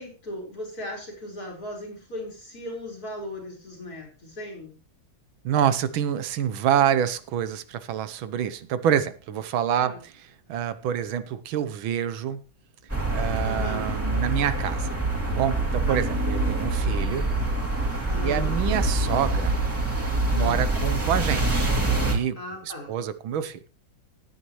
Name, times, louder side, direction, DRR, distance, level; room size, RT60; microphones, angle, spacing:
voice 1, 0.0-4.7 9.7-10.0 13.4-13.9 15.9-16.1 18.1-18.5 20.3-20.6 22.3-22.9, left 1 dB, 45° left, 4.9 m, -37 dB
voice 2, 5.4-10.1 10.5-12.4 13.1-14.9 15.3-17.3 18.2-19.6 20.3-22.4 22.6-23.6, right 9 dB, 80° right, 1.6 m, -27 dB
playground in russia with heavy traffic, 12.9-22.1, right 2 dB, 5° right, 2.6 m, -25 dB
17.5 x 9.4 x 3.1 m
omnidirectional pair, 2.2 m